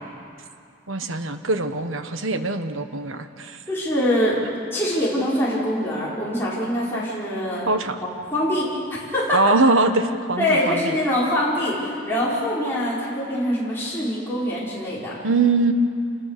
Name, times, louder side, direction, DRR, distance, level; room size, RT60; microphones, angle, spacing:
voice 1, 0.9-3.6 7.7-8.0 9.3-11.0 15.2-15.7, right 3 dB, 85° right, 8 dB, 1.3 m, -22 dB
voice 2, 3.7-4.4 4.7-7.8 8.3-9.4 10.4-15.2, left 1 dB, 10° left, -8 dB, 5.4 m, -24 dB
27.5 x 20.0 x 6.9 m, 2.4 s
head